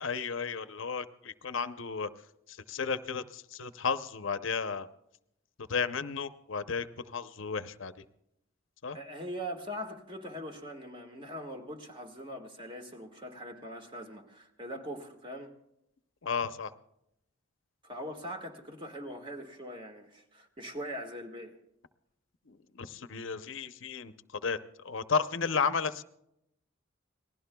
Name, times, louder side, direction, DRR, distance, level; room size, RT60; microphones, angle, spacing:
voice 1, 0.0-2.1 2.7-4.9 5.7-6.9 7.1-7.9 8.8-9.0 16.2-16.7 22.8-24.1 24.4-24.6 24.8-26.0, left 5 dB, 65° left, 11 dB, 0.7 m, -33 dB
voice 2, 8.9-15.5 17.8-21.6, equal, 25° right, 4 dB, 1.7 m, -41 dB
28.0 x 19.5 x 2.3 m, 0.81 s
head